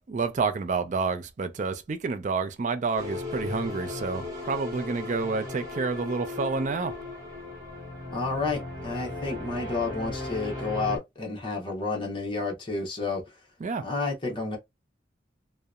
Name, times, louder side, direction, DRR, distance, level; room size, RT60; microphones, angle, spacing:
voice 1, 0.0-6.9 13.6-13.8, right 4 dB, 40° right, 0.3 m, -29 dB
sound 1, 3.0-11.0, left 3 dB, 15° right, 0.9 m, -36 dB
voice 2, 8.1-13.2 13.8-14.6, left 3 dB, 25° left, 0.8 m, -30 dB
2.7 x 2.0 x 2.3 m
head